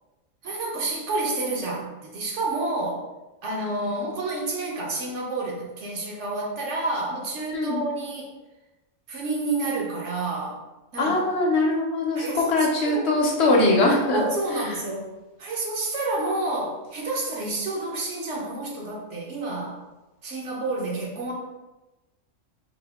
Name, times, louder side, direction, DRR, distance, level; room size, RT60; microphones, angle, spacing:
voice 1, 0.4-3.0 3.4-8.3 9.1-10.6 10.9-11.1 12.2-13.1 14.1-15.1 15.4-19.8 20.2-21.3, right 2 dB, 65° right, -2 dB, 1.1 m, -29 dB
voice 2, 7.5-7.8 11.0-14.2, left 2 dB, 60° left, -1 dB, 0.9 m, -21 dB
3.7 x 2.7 x 3.4 m, 1.1 s
omnidirectional pair, 1.3 m